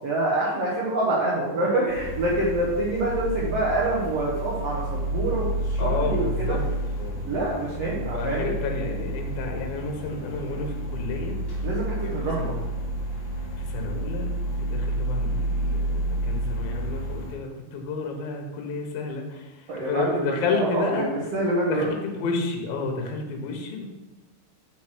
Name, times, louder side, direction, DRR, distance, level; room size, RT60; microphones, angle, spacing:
voice 1, 0.0-6.6 7.2-8.5 11.6-12.6 19.7-21.9, right 2 dB, 75° right, -6 dB, 1.4 m, -26 dB
sound 1, 1.9-17.3, right 1 dB, 45° left, 1.6 m, -30 dB
voice 2, 5.8-6.6 7.0-7.2 7.9-11.4 12.0-12.5 13.6-21.1 21.7-23.8, left 4 dB, 70° left, 2 dB, 2.6 m, -31 dB
6.0 x 4.6 x 6.0 m, 1.1 s
omnidirectional pair, 4.8 m